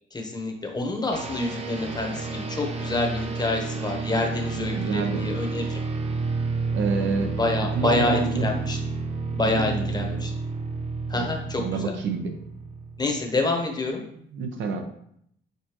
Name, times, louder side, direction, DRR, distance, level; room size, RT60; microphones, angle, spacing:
voice 1, 0.1-5.8 7.4-8.8 9.3-10.3 11.1-11.8 13.0-14.0, left 2 dB, 20° left, 2 dB, 1.0 m, -27 dB
sound 1, 1.1-13.3, right 4 dB, 30° right, 0.7 m, -30 dB
voice 2, 4.8-5.3 6.7-7.4 7.7-8.6 9.4-10.2 11.1-11.3 11.6-12.3 14.3-14.8, right 4 dB, 75° right, 5 dB, 0.8 m, -28 dB
6.6 x 2.6 x 2.9 m, 0.69 s
cardioid pair, 90°, 20 cm